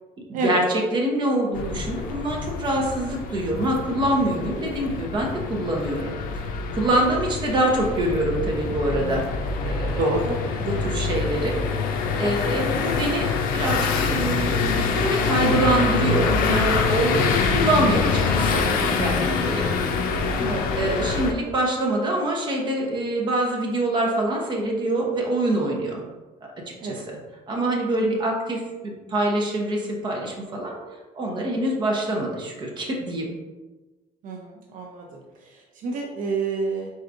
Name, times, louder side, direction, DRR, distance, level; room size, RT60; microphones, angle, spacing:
voice 1, 0.3-6.1 6.7-9.3 9.6-10.0 10.6-19.7 20.8-26.0 26.7-27.2 27.5-30.8 31.1-33.3, right 1 dB, 30° right, -1 dB, 0.9 m, -25 dB
sound 1, 1.5-21.3, left 5 dB, 75° left, 0.5 m, -25 dB
voice 2, 10.0-10.4 20.2-20.8 26.8-27.1 28.0-28.1 34.2-36.9, right 3 dB, 65° right, 0 dB, 0.6 m, -29 dB
4.7 x 4.0 x 2.5 m, 1.2 s
cardioid pair, 145°, 15 cm